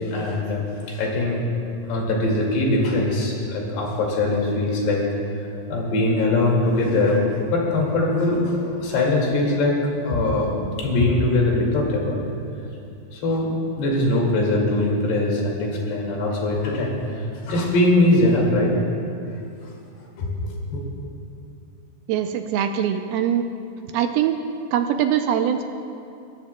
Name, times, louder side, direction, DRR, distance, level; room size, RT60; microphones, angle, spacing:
voice 1, 0.1-0.6 0.9-1.4 1.9-5.1 5.7-7.2 7.5-9.8 10.0-10.5 10.8-12.2 13.1-17.0 17.5-18.7 20.2-20.8, left 2 dB, 90° left, -2 dB, 4.4 m, -21 dB
voice 2, 22.1-23.5 23.8-24.4 24.7-25.6, right 9 dB, 80° right, 6 dB, 2.3 m, -22 dB
21.0 x 17.5 x 2.2 m, 2.6 s
omnidirectional pair, 4.6 m